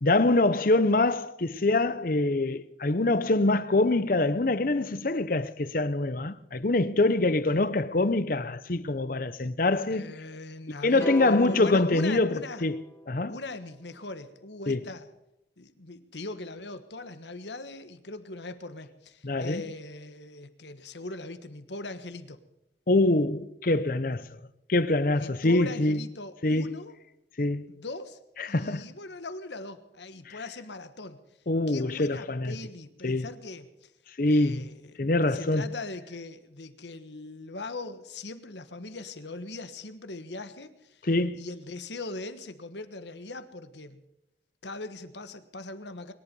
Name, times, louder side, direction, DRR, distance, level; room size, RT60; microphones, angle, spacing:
voice 1, 0.0-10.2 10.8-13.4 14.7-14.8 19.2-19.7 22.9-24.3 24.7-26.0 26.4-26.7 27.4-27.7 28.4-28.9 30.3-30.4 31.5-32.5 33.0-33.3 34.2-34.7 35.0-35.7 41.0-41.4, left 2 dB, 50° left, 0.8 m, -25 dB
voice 2, 9.9-12.6 13.3-15.1 15.6-22.4 25.1-26.9 27.7-28.2 28.5-31.2 31.7-33.9 34.2-34.9 35.3-41.0 41.3-44.0 44.6-46.1, left 2 dB, 75° left, 1.4 m, -40 dB
sound 1, 11.0-13.3, right 1 dB, 15° left, 1.2 m, -37 dB
22.5 x 11.5 x 5.4 m
head